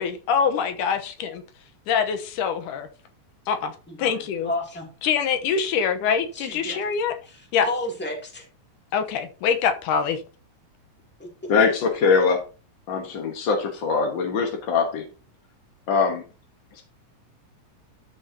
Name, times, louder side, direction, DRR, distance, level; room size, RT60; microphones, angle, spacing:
voice 1, 0.0-1.4 1.9-2.9 3.5-4.5 5.0-7.1 7.5-7.7 8.9-10.2, left 7 dB, 85° left, 7 dB, 2.6 m, -24 dB
voice 2, 3.9-4.9 6.3-6.8 7.3-8.5 11.2-11.5, left 2 dB, 5° left, 0 dB, 2.1 m, -32 dB
voice 3, 11.5-12.4 12.9-15.0 15.9-16.2 16.8-16.9, left 5 dB, 50° left, 3 dB, 1.5 m, -22 dB
12.5 x 6.4 x 2.8 m, 0.35 s
omnidirectional pair, 3.6 m